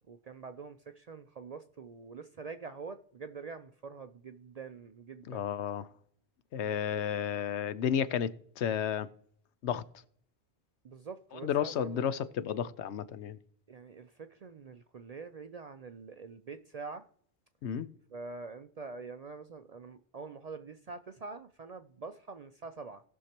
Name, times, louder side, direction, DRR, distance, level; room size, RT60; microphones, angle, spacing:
voice 1, 0.1-5.4 10.8-12.0 13.7-17.1 18.1-23.0, right 4 dB, 55° right, 0.4 m, -45 dB
voice 2, 5.3-5.9 6.5-9.1 9.6-9.8 11.4-13.4 17.6-17.9, left 8 dB, 80° left, 0.9 m, -32 dB
18.0 x 6.4 x 2.9 m
omnidirectional pair, 1.1 m